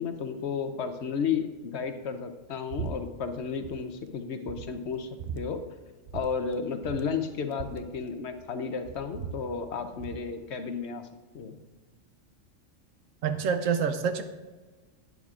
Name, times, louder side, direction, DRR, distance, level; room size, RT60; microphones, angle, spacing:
voice 1, 0.0-5.1 5.3-5.6 6.1-11.1 11.3-11.6, left 6 dB, 65° left, 8 dB, 0.9 m, -33 dB
sound 1, 2.7-2.9 3.2-3.7 4.1-4.2 4.5-5.4 6.1-6.3 6.5-6.6 6.8-8.5 8.8-10.2, right 7 dB, 55° right, 0.6 m, -39 dB
voice 2, 13.2-14.2, right 6 dB, 90° right, 8 dB, 1.2 m, -27 dB
11.0 x 9.4 x 2.4 m, 1.3 s
omnidirectional pair, 1.3 m